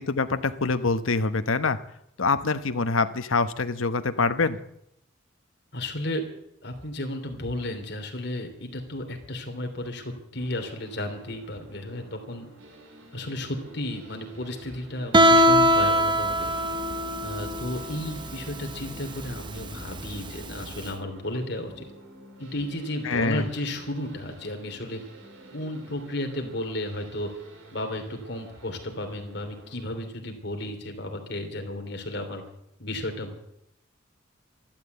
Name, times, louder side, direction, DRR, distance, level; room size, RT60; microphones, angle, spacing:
voice 1, 0.0-1.8 2.2-4.6 23.0-23.5, left 4 dB, 80° left, 10 dB, 0.9 m, -25 dB
voice 2, 5.7-6.3 6.6-12.5 13.1-16.5 17.2-21.9 22.4-25.0 25.5-27.3 27.7-32.4 32.8-33.4, left 1 dB, 55° left, 4 dB, 3.1 m, -33 dB
sound 1, 10.4-30.0, right 2 dB, 70° right, 3.2 m, -49 dB
Guitar, 15.1-20.8, right 1 dB, 20° right, 0.7 m, -22 dB
13.0 x 12.0 x 8.0 m, 0.78 s
head